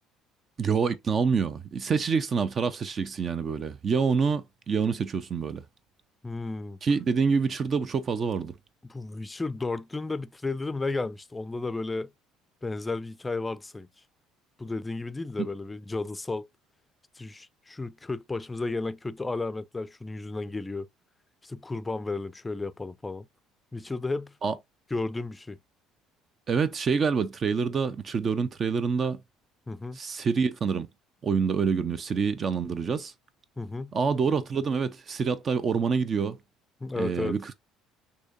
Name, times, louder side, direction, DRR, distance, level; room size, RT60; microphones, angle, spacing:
voice 1, 0.6-5.6 6.8-8.5 15.4-15.5 24.4-24.5 26.5-29.2 30.0-30.9 31.2-33.1 33.9-36.4 37.0-37.5, right 5 dB, 40° right, 0.5 m, -26 dB
voice 2, 6.2-6.8 8.8-12.1 12.6-13.9 14.6-16.5 17.2-20.9 21.4-23.3 23.7-24.3 24.9-25.6 29.7-30.0 33.6-33.9 36.8-37.4, left 3 dB, 20° left, 0.4 m, -33 dB
6.2 x 2.8 x 2.5 m
hypercardioid pair, 60°, 0 cm